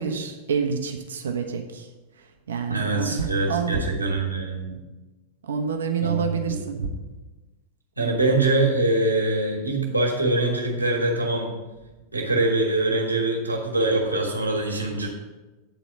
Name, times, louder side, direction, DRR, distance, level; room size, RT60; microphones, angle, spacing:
voice 1, 0.0-1.9 2.5-3.8 5.4-6.9 8.2-8.3, right 6 dB, 65° right, 4 dB, 1.0 m, -28 dB
voice 2, 2.7-4.8 6.0-6.2 6.5-6.9 8.0-11.5 12.1-15.1, right 2 dB, 80° right, -1 dB, 1.6 m, -24 dB
9.2 x 4.1 x 7.0 m, 1.2 s
figure-of-eight pair, 90°, 0 cm